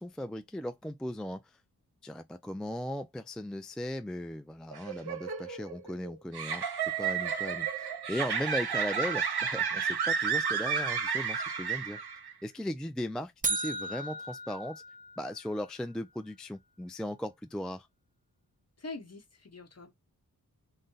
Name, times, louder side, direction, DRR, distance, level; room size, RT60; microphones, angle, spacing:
voice 1, 0.0-1.4 2.0-12.0 12.4-14.8 15.2-17.9, equal, ahead, 0.3 m, -37 dB
sound 1, 4.7-12.3, right 6 dB, 85° right, 0.7 m, -32 dB
sound 2, 13.4-15.6, right 2 dB, 20° right, 0.7 m, -35 dB
voice 2, 18.8-19.9, left 3 dB, 40° left, 0.9 m, -44 dB
3.9 x 2.2 x 3.8 m
wide cardioid pair, 80°, 38 cm